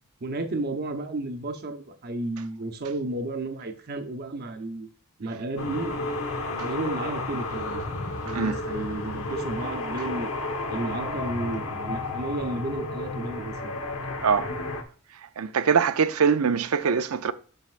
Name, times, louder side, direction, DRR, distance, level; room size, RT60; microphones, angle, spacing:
voice 1, 0.2-4.9 5.2-5.9 6.6-7.8 8.2-10.3 10.7-13.8, right 2 dB, 50° right, 0.9 m, -32 dB
sound 1, 5.6-14.8, left 2 dB, 75° left, 1.1 m, -32 dB
voice 2, 8.3-8.6 14.2-14.5 15.4-17.3, right 6 dB, 85° right, 0.5 m, -23 dB
7.7 x 6.5 x 2.4 m
head